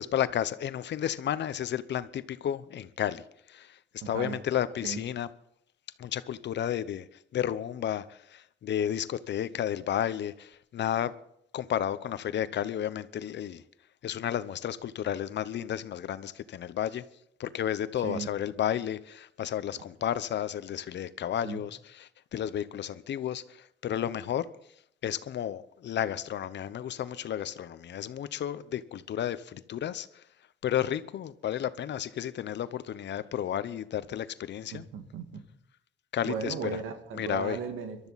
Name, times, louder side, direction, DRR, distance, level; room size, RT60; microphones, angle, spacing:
voice 1, 0.0-3.2 3.5-3.7 4.1-5.3 6.0-7.0 7.3-11.1 11.5-13.6 14.0-17.0 17.4-23.4 23.8-24.5 25.0-30.1 30.6-34.8 36.1-36.5 37.2-37.6, left 10 dB, 60° left, 0.9 m, -32 dB
voice 2, 4.0-4.4 4.8-5.0 18.0-18.3 21.4-21.6 34.7-35.4 36.3-38.0, right 6 dB, 90° right, 2.0 m, -36 dB
22.5 x 13.0 x 4.2 m
cardioid pair, 90°, 20 cm